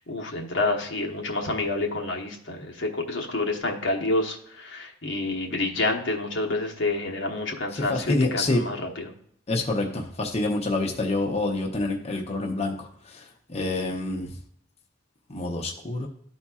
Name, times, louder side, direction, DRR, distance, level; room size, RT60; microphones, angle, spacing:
voice 1, 0.0-9.1, left 2 dB, 80° left, 1 dB, 1.1 m, -28 dB
voice 2, 7.7-8.6 9.5-14.3 15.3-16.1, left 2 dB, 35° left, 0 dB, 0.8 m, -27 dB
12.5 x 4.2 x 2.4 m, 0.67 s
head